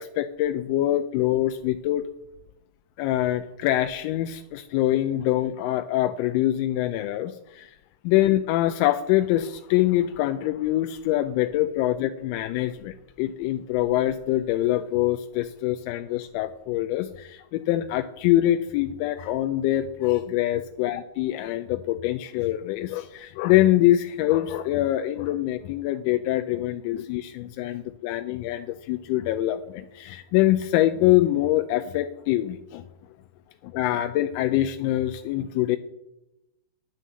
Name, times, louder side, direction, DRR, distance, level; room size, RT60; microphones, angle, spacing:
voice 1, 0.0-2.1 3.0-7.8 8.0-32.8 33.6-35.8, left 14 dB, 55° left, 8 dB, 0.6 m, -24 dB
9.1 x 6.5 x 7.6 m, 0.92 s
hypercardioid pair, 125°, 0 cm